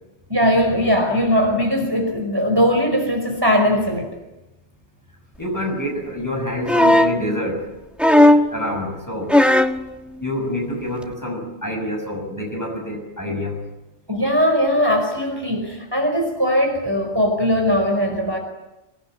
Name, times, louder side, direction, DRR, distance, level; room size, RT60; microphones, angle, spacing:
voice 1, 0.3-4.1 14.1-18.4, equal, 20° right, 2 dB, 5.0 m, -19 dB
voice 2, 5.4-7.8 8.5-9.4 10.2-13.7, left 1 dB, 15° left, 1 dB, 6.5 m, -27 dB
sound 1, 6.7-7.2 8.0-8.5 9.3-9.8 11.0-11.1, left 1 dB, ahead, 1.3 m, -14 dB
25.5 x 19.5 x 9.8 m, 1.0 s
omnidirectional pair, 1.1 m